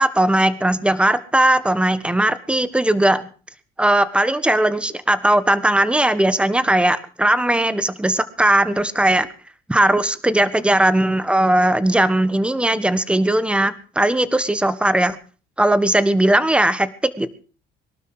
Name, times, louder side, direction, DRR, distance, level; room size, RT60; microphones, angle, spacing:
voice 1, 0.0-3.3 3.8-9.3 9.7-15.2 15.6-17.3, right 1 dB, 5° right, 15 dB, 1.3 m, -18 dB
22.5 x 12.0 x 4.9 m, 0.39 s
cardioid pair, 110°, 17 cm